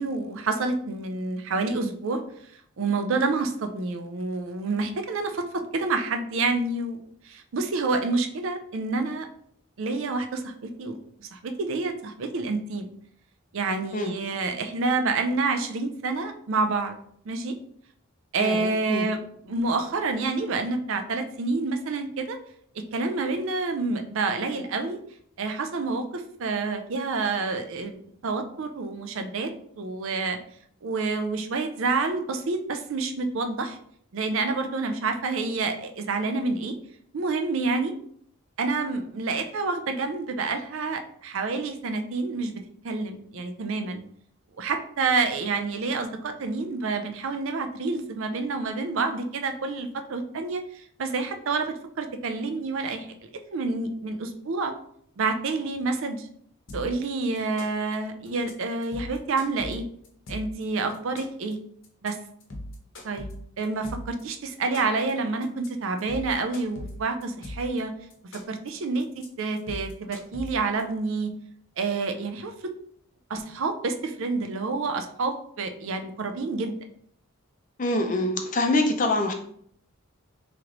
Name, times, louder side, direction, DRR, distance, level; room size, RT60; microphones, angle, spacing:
voice 1, 0.0-2.2 2.8-7.0 7.3-9.3 9.8-12.9 13.5-17.0 17.3-17.5 18.3-19.2 19.5-22.4 22.9-25.0 25.4-28.0 28.2-30.4 30.8-33.8 34.1-36.7 37.1-37.9 38.6-42.5 42.8-44.0 44.6-54.7 55.2-56.3 56.7-59.8 60.3-61.6 62.0-62.2 63.0-63.3 63.6-67.9 68.5-71.3 71.8-72.5 73.3-76.8, right 3 dB, 65° right, 7 dB, 0.5 m, -28 dB
voice 2, 18.4-19.1 77.8-79.3, left 2 dB, 35° left, 4 dB, 0.5 m, -25 dB
sound 1, 56.7-57.1 57.4-57.9 58.3-58.5 58.8-60.6 60.9-61.5 61.8-62.1 62.4-64.2 64.5-65.1 65.4-65.7 66.0-67.8 68.1-68.7 69.0-69.3 69.6-70.8, left 1 dB, 60° left, 0.8 m, -39 dB
3.1 x 3.0 x 3.8 m, 0.65 s
head